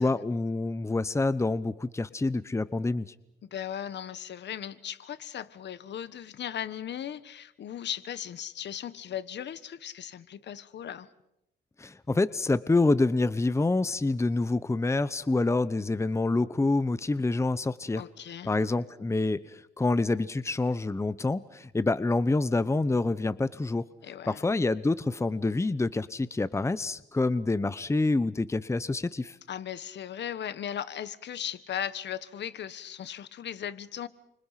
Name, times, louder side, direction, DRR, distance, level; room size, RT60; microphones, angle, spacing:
voice 1, 0.0-3.1 11.8-18.0 18.4-23.8 24.3-29.4, left 2 dB, 15° left, 15 dB, 0.9 m, -27 dB
voice 2, 3.5-11.1 18.0-18.5 24.0-24.4 29.5-34.1, left 9 dB, 60° left, 14 dB, 1.4 m, -37 dB
29.5 x 25.5 x 5.9 m, 0.83 s
cardioid pair, 90°, 20 cm